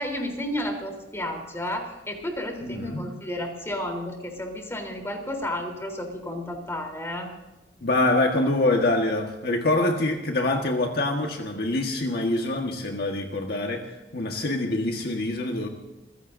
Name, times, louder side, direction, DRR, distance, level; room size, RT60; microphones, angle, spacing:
voice 1, 0.0-7.3, left 1 dB, 15° left, 2 dB, 3.7 m, -32 dB
voice 2, 2.6-3.1 7.8-15.7, left 2 dB, 60° left, 2 dB, 1.5 m, -25 dB
28.0 x 16.0 x 2.7 m, 1.0 s
head